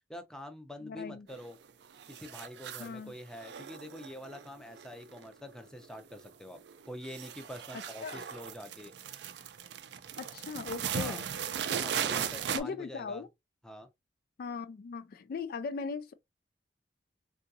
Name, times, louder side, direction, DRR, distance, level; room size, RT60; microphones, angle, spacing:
voice 1, 0.1-1.6 2.1-6.6 6.9-8.9 10.9-11.2 11.7-13.2 13.6-13.9, left 1 dB, 5° left, 0.5 m, -46 dB
voice 2, 0.8-1.3 2.8-3.1 8.0-8.2 10.2-11.2 12.5-13.3 14.4-16.1, left 5 dB, 55° left, 0.3 m, -38 dB
sound 1, 1.3-1.7 1.9-3.0 3.3-5.6 5.8-6.3 6.6-12.6, right 8 dB, 65° right, 0.4 m, -38 dB
3.8 x 2.3 x 2.6 m
head